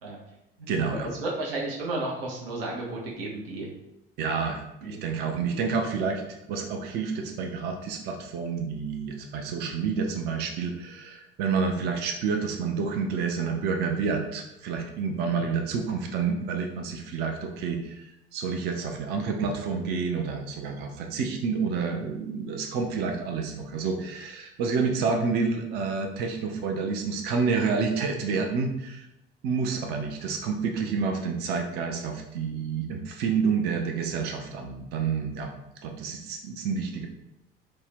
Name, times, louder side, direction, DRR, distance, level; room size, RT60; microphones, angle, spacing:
voice 1, 0.7-1.1 4.2-6.2 6.5-29.1 29.4-35.5 35.8-37.1, right 5 dB, 35° right, 4 dB, 0.4 m, -29 dB
voice 2, 1.2-3.7 4.8-5.0 15.2-15.4 29.6-29.8, right 2 dB, 70° right, -3 dB, 0.7 m, -33 dB
2.6 x 2.1 x 3.4 m, 0.86 s
figure-of-eight pair, 60°, 30 cm